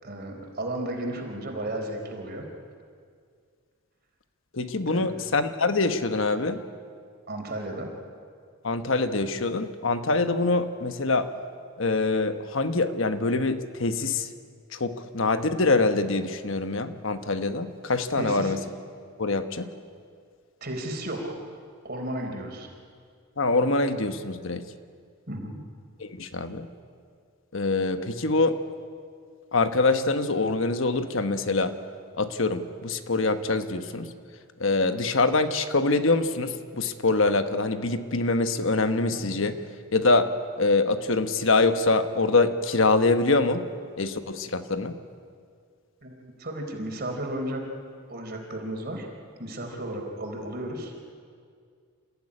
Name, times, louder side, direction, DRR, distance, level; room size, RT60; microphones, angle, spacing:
voice 1, 0.0-2.5 4.9-5.1 7.3-7.9 18.2-18.5 20.6-21.4 21.8-22.7 25.3-25.6 46.0-47.6 48.1-49.1 49.4-50.9, right 1 dB, 45° right, 2 dB, 4.1 m, -34 dB
voice 2, 4.5-6.6 8.6-11.3 11.8-14.3 14.7-18.6 19.2-19.7 23.4-24.6 26.0-26.7 27.5-28.6 29.5-31.7 32.2-34.1 34.6-39.6 39.9-40.3 40.6-43.7 44.0-44.9, left 3 dB, 60° left, 9 dB, 1.2 m, -24 dB
28.0 x 15.5 x 9.9 m, 2.1 s
head